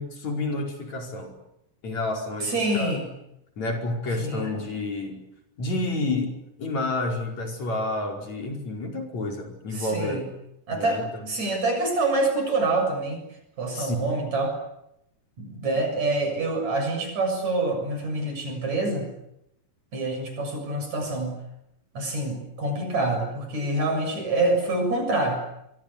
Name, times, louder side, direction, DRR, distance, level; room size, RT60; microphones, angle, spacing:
voice 1, 0.0-1.3 1.8-2.9 3.6-5.2 5.6-6.3 6.6-10.2 10.7-11.3 13.7-14.2, left 2 dB, 60° left, 2 dB, 6.4 m, -30 dB
voice 2, 2.4-3.1 4.2-4.5 9.7-10.2 10.7-13.2 13.6-14.6 15.4-19.1 19.9-21.4 21.9-25.4, right 2 dB, 60° right, 5 dB, 8.5 m, -26 dB
27.5 x 23.5 x 8.3 m, 0.81 s
omnidirectional pair, 3.6 m